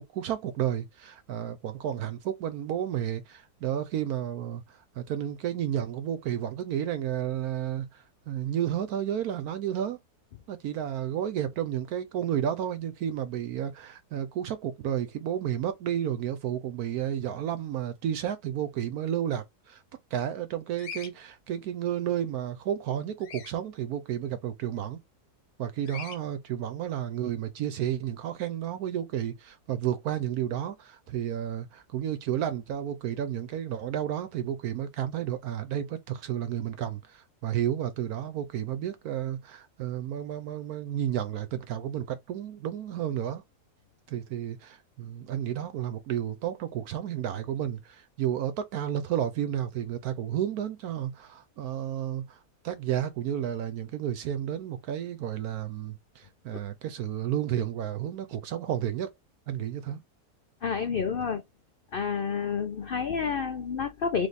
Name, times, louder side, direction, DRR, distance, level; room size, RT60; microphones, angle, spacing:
voice 1, 0.1-10.0 10.5-19.8 20.1-25.0 25.6-43.4 44.1-59.1 59.5-60.0, right 10 dB, 70° right, 1.1 m, -32 dB
Bird vocalization bird call bird song, 20.8-21.1 23.2-23.5 25.9-26.2, left 7 dB, 60° left, 1.3 m, -40 dB
voice 2, 60.6-61.4 61.9-64.3, left 6 dB, 80° left, 0.5 m, -29 dB
3.5 x 3.4 x 4.0 m
omnidirectional pair, 1.7 m